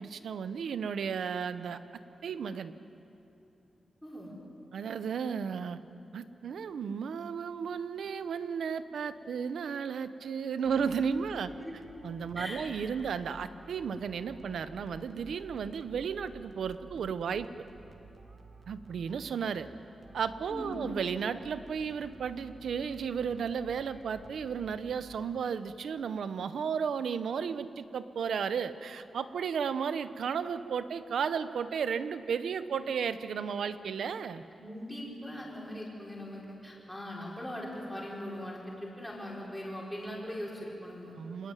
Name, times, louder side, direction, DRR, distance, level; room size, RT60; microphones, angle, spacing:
voice 1, 0.0-1.8 2.2-2.7 4.7-5.8 6.1-11.5 12.0-17.5 18.7-19.7 20.1-34.4 41.2-41.5, right 6 dB, 75° right, 12 dB, 1.0 m, -34 dB
voice 2, 4.0-4.3 11.4-11.7 12.4-12.6 20.5-20.8 34.5-41.2, equal, ahead, -4 dB, 5.5 m, -40 dB
sound 1, 10.6-25.6, right 2 dB, 40° right, 1.6 m, -53 dB
26.5 x 20.0 x 9.2 m, 2.9 s
wide cardioid pair, 160°, 0 cm